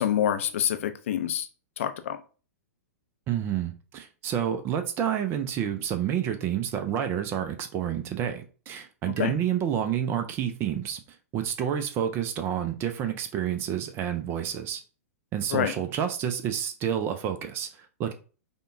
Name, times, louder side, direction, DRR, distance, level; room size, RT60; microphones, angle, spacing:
voice 1, 0.0-1.5 1.8-2.2 9.2-9.3 15.5-15.7, left 10 dB, 55° left, 0.5 m, -26 dB
voice 2, 3.3-11.0 11.3-14.8 15.3-18.1, right 9 dB, 30° right, 0.5 m, -29 dB
5.1 x 2.3 x 2.6 m
figure-of-eight pair, 105°, 8 cm